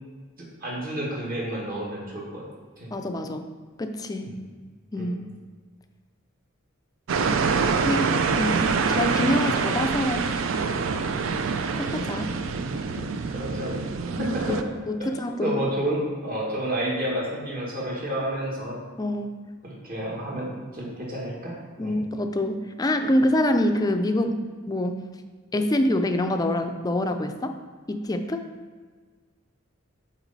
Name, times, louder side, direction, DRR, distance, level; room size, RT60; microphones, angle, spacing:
voice 1, 0.4-2.5 2.8-2.9 4.2-4.4 4.9-5.1 13.3-14.6 15.4-18.8 19.6-21.5 21.8-21.9, right 1 dB, 45° right, -3 dB, 1.6 m, -30 dB
voice 2, 2.9-3.4 3.8-4.3 4.9-5.2 7.8-10.3 11.8-12.4 13.0-13.1 14.2-15.6 19.0-19.3 21.8-24.4 24.7-25.0 25.5-27.5 27.9-28.5, left 1 dB, 20° left, 7 dB, 0.4 m, -26 dB
sound 1, 7.1-14.6, right 5 dB, 75° right, 0.4 m, -25 dB
6.0 x 4.2 x 4.1 m, 1.5 s
head